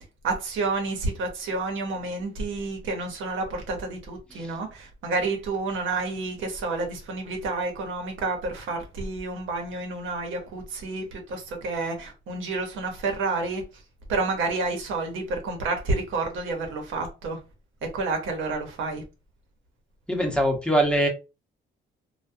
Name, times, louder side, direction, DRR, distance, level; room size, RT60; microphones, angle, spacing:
voice 1, 0.2-13.6 14.1-17.4 17.8-19.0, right 3 dB, 80° right, 0.9 m, -29 dB
voice 2, 20.1-21.1, right 1 dB, 5° left, 0.8 m, -23 dB
2.3 x 2.3 x 2.6 m
cardioid pair, 90°, 20 cm